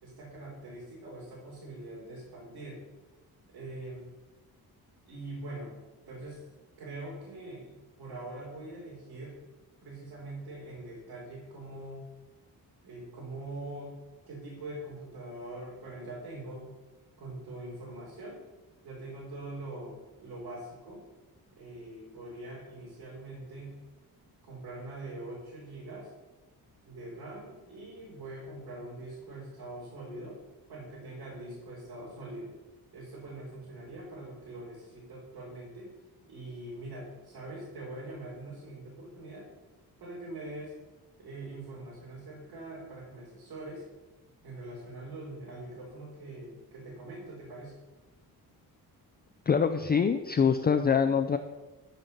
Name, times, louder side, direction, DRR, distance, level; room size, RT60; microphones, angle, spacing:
voice 1, 0.0-2.8 3.5-4.1 5.1-6.4 6.8-9.4 9.8-12.0 12.8-14.0 14.3-16.7 17.2-18.4 18.8-21.0 21.6-23.8 24.4-26.1 26.9-30.4 30.7-32.5 32.9-35.9 36.2-39.5 40.0-40.7 41.2-43.8 44.4-47.7, right 2 dB, 80° right, -6 dB, 4.1 m, -43 dB
voice 2, 49.5-51.4, left 6 dB, 25° left, 8 dB, 0.4 m, -24 dB
13.5 x 5.9 x 6.7 m, 1.2 s
wide cardioid pair, 165°, 37 cm